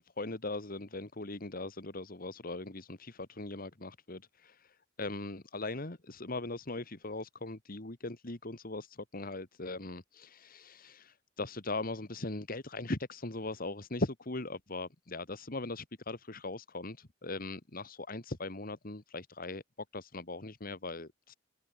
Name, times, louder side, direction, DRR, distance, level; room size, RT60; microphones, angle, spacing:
voice 1, 0.0-19.6 19.9-21.3, left 2 dB, 50° left, 2.0 m, -40 dB
open air
head